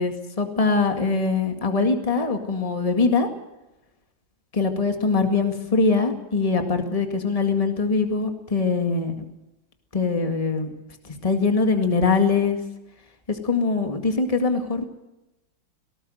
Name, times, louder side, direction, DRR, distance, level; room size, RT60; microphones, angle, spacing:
voice 1, 0.0-3.3 4.5-9.2 9.9-10.7 11.1-12.6 13.3-14.8, left 4 dB, 20° left, 5 dB, 2.0 m, -22 dB
19.0 x 18.5 x 7.9 m, 0.96 s
omnidirectional pair, 2.0 m